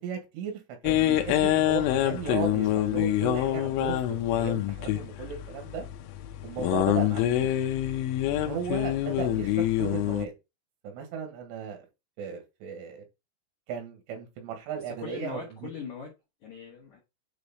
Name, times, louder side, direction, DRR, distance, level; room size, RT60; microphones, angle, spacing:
voice 1, 0.0-5.9 6.4-7.5 8.2-10.3 10.8-11.9 12.2-13.0 13.7-15.7, right 7 dB, 75° right, 4.0 m, -36 dB
sound 1, 0.9-10.3, left 13 dB, 80° left, 3.2 m, -26 dB
voice 2, 14.9-16.1 16.4-17.0, left 6 dB, 60° left, 2.1 m, -40 dB
9.3 x 3.2 x 4.0 m
omnidirectional pair, 5.7 m